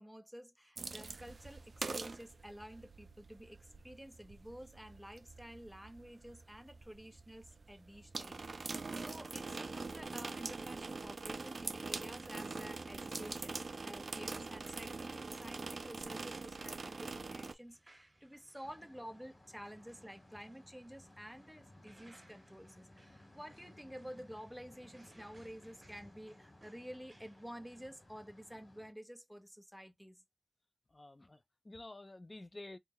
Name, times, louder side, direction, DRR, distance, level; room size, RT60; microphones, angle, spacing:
voice 1, 0.0-30.2, equal, ahead, 0.7 m, -51 dB
sound 1, 0.8-17.5, right 3 dB, 75° right, 0.3 m, -44 dB
sound 2, 12.5-27.9, right 1 dB, 40° right, 1.7 m, -67 dB
sound 3, 18.7-28.9, left 1 dB, 75° left, 1.7 m, -61 dB
voice 2, 30.9-32.8, left 2 dB, 35° left, 0.4 m, -51 dB
3.7 x 2.1 x 2.9 m
wide cardioid pair, 80°, 0 cm